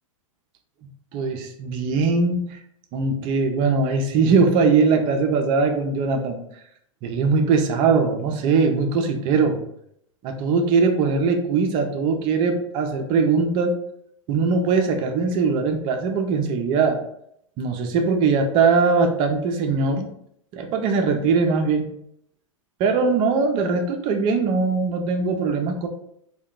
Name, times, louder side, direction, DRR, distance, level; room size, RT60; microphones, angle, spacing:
voice 1, 1.1-2.6 2.9-6.4 7.0-9.6 10.2-13.8 14.3-17.0 17.6-20.1 20.5-21.9 22.8-25.9, right 4 dB, 30° right, 5 dB, 0.4 m, -21 dB
2.7 x 2.2 x 3.5 m, 0.73 s
figure-of-eight pair, 100°, 17 cm